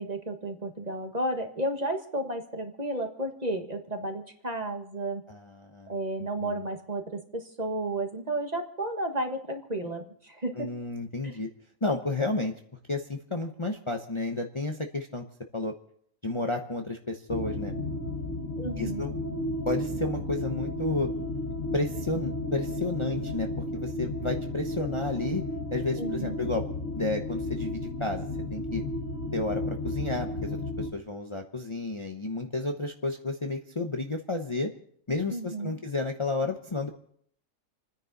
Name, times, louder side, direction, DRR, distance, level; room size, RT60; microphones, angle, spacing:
voice 1, 0.0-5.2 5.9-10.7 18.6-19.1 26.0-26.3 35.3-35.8, right 1 dB, 30° right, 4 dB, 1.7 m, -32 dB
voice 2, 5.3-6.0 6.4-6.6 10.5-11.5 11.8-12.5 12.9-15.2 15.5-15.7 16.2-17.7 18.8-19.1 19.7-21.1 21.7-25.4 25.7-26.7 26.9-28.8 29.3-34.7 35.1-36.9, left 2 dB, 25° left, 3 dB, 0.9 m, -31 dB
sound 1, 17.3-30.9, left 1 dB, 85° left, 2.0 m, -33 dB
29.5 x 10.0 x 4.1 m, 0.65 s
omnidirectional pair, 1.4 m